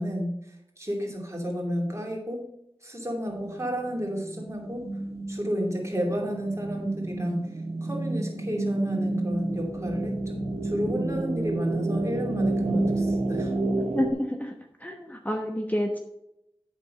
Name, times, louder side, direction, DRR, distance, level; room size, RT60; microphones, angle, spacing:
voice 1, 0.0-2.5 2.8-4.9 5.3-7.5 7.8-13.5, equal, 30° right, -1 dB, 2.6 m, -32 dB
sound 1, 3.3-14.1, right 2 dB, 90° right, 1.2 m, -30 dB
voice 2, 13.9-14.5 14.8-16.0, equal, 15° left, 3 dB, 1.0 m, -28 dB
8.0 x 6.1 x 5.3 m, 0.83 s
wide cardioid pair, 45°, 10 cm